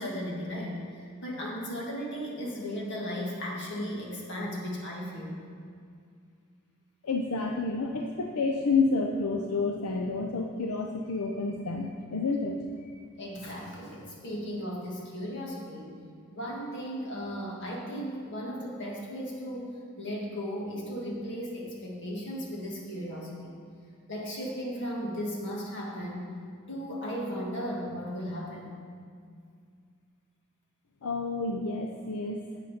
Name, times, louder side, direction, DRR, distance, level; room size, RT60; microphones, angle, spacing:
voice 1, 0.0-5.3 13.2-16.0 16.3-19.7 20.0-23.5 24.1-26.3 26.7-28.7, equal, 55° left, -3 dB, 2.1 m, -36 dB
voice 2, 7.0-12.9 31.0-32.4, left 3 dB, 80° left, 2 dB, 0.6 m, -29 dB
8.1 x 7.6 x 5.7 m, 2.3 s
head